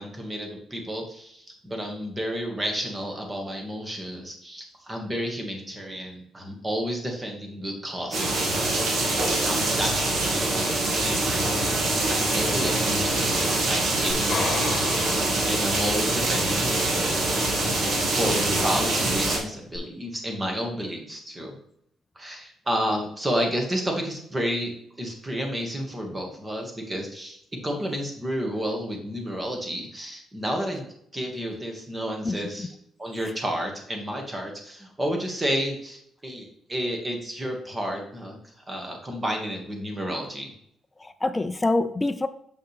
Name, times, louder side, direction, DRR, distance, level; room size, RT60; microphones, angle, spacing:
voice 1, 0.0-8.9 9.4-11.6 12.1-21.5 22.2-24.7 25.0-30.9 31.1-32.7 33.0-40.5, equal, 20° right, 2 dB, 1.7 m, -31 dB
sound 1, 8.1-19.4, right 2 dB, 60° right, 1.8 m, -24 dB
sound 2, 14.1-16.0 19.7-19.8, left 4 dB, 45° left, 1.2 m, -32 dB
voice 2, 32.2-32.7 41.0-42.3, left 2 dB, 15° left, 9 dB, 0.5 m, -26 dB
6.8 x 5.6 x 3.4 m, 0.70 s
cardioid pair, 105°, 0 cm